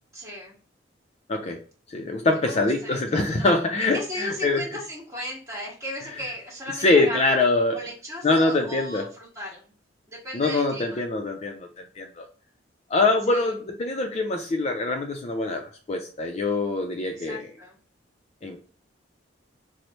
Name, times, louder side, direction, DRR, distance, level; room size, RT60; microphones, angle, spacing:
voice 1, 0.1-0.6 2.4-3.0 3.3-3.5 3.9-7.4 7.7-9.6 10.1-11.0 13.3-13.5 17.1-17.8, left 1 dB, 15° right, -3 dB, 1.4 m, -36 dB
voice 2, 1.3-1.6 1.9-4.6 6.8-7.8 8.2-9.0 10.3-11.7 12.0-12.3 12.9-17.5 18.4-18.6, left 2 dB, 35° left, 3 dB, 0.4 m, -24 dB
3.1 x 2.0 x 4.0 m, 0.42 s
head